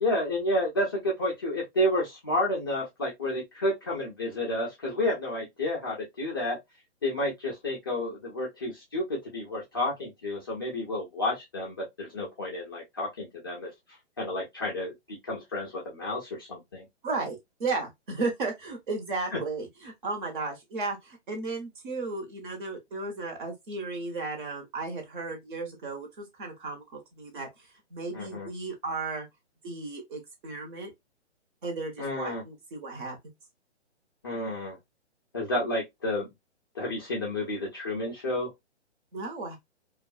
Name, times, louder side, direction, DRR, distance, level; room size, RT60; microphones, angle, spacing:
voice 1, 0.0-6.6 7.0-13.7 14.2-16.8 19.3-19.4 28.1-28.5 32.0-32.4 34.2-34.8 35.3-36.3 36.7-38.5, left 1 dB, 20° left, 0.4 m, -30 dB
voice 2, 17.0-27.5 27.9-29.3 29.6-30.9 31.6-33.2 39.1-39.6, right 3 dB, 45° right, 1.0 m, -34 dB
2.5 x 2.3 x 2.3 m
figure-of-eight pair, 135°, 35 cm